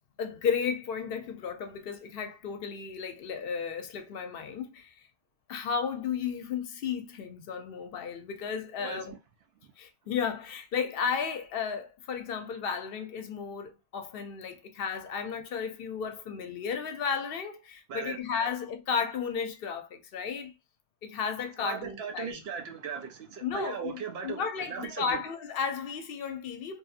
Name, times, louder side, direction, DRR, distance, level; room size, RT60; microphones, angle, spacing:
voice 1, 0.2-4.9 5.5-9.1 9.8-20.5 21.0-22.4 23.4-26.8, left 6 dB, 70° left, 0.7 m, -34 dB
voice 2, 17.9-18.5 21.6-25.2, right 6 dB, 75° right, 0.9 m, -38 dB
2.7 x 2.7 x 2.4 m
omnidirectional pair, 1.0 m